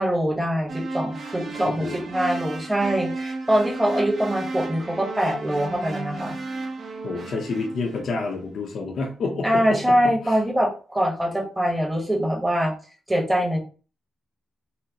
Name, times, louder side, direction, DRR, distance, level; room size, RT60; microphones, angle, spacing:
voice 1, 0.0-6.4 9.4-12.7 13.1-13.6, equal, 10° right, -1 dB, 1.1 m, -23 dB
sound 1, 0.7-8.2, right 3 dB, 50° right, 0.8 m, -33 dB
voice 2, 7.0-10.4, left 3 dB, 60° left, 0 dB, 0.7 m, -29 dB
4.1 x 2.1 x 2.8 m, 0.37 s
cardioid pair, 125°, 0 cm